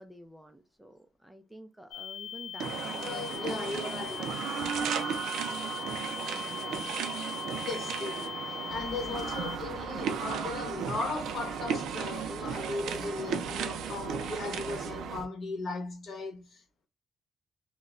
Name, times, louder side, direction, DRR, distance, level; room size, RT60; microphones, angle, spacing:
voice 1, 0.0-4.9, right 1 dB, 5° right, 0.3 m, -51 dB
sound 1, 1.9-9.6, left 9 dB, 85° left, 0.4 m, -41 dB
sound 2, 2.6-15.2, right 7 dB, 85° right, 0.4 m, -35 dB
voice 2, 3.0-4.2 5.6-5.7 7.6-8.3 8.7-16.9, left 3 dB, 50° left, 0.8 m, -37 dB
sound 3, 8.7-15.3, right 2 dB, 35° right, 0.7 m, -46 dB
2.1 x 2.0 x 3.5 m
cardioid pair, 125°, 0 cm